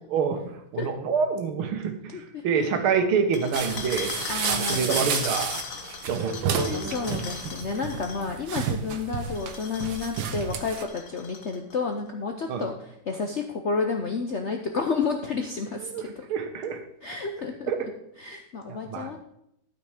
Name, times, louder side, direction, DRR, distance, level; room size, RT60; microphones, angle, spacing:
voice 1, 0.1-4.1 4.5-5.5 6.1-6.8 12.5-12.6 15.8-16.8 17.7-17.9 18.7-19.2, right 6 dB, 90° right, 6 dB, 2.0 m, -27 dB
voice 2, 2.1-2.4 4.3-4.9 6.8-16.3 17.0-17.9 18.2-19.2, left 4 dB, 70° left, 3 dB, 0.6 m, -31 dB
sound 1, 3.3-8.2 9.3-11.7, left 6 dB, 50° left, 1.2 m, -37 dB
sound 2, 3.5-10.8, right 6 dB, 75° right, 1.6 m, -31 dB
12.0 x 5.9 x 4.9 m, 0.77 s
omnidirectional pair, 2.2 m